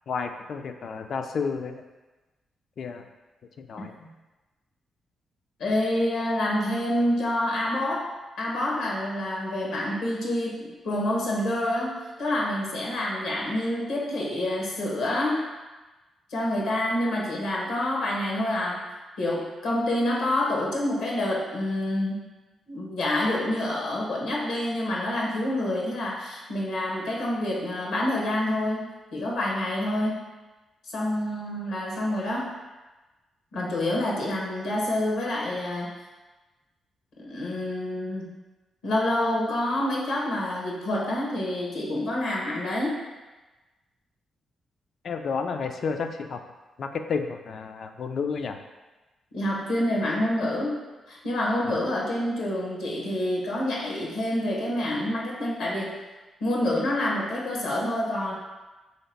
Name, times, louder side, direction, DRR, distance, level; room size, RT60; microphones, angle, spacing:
voice 1, 0.1-1.8 2.8-3.1 3.6-4.0 45.0-46.4 46.8-48.6 51.7-51.8, left 5 dB, 60° left, 6 dB, 0.4 m, -31 dB
voice 2, 5.6-8.1 8.4-15.4 16.3-18.8 19.2-22.3 22.7-30.2 30.9-32.5 33.5-36.0 37.2-38.4 38.8-43.0 49.3-50.8 51.1-56.0 56.4-58.3, left 1 dB, 85° left, -2 dB, 1.0 m, -27 dB
3.2 x 2.8 x 4.4 m, 1.2 s
supercardioid pair, 60°, 0 cm